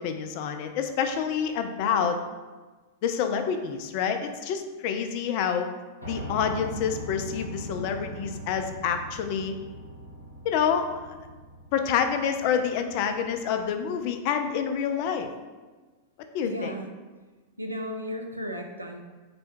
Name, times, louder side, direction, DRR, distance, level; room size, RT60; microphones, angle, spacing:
voice 1, 0.0-2.2 3.0-5.7 6.0-9.6 10.4-11.2 11.7-15.3 16.3-16.7, left 7 dB, 45° left, 7 dB, 0.3 m, -27 dB
Piano, 6.0-14.0, equal, 90° left, 0.7 m, -41 dB
voice 2, 16.4-16.9 17.6-19.0, equal, 85° right, 3 dB, 0.4 m, -34 dB
3.4 x 2.2 x 4.2 m, 1.3 s
figure-of-eight pair, 90°, 0 cm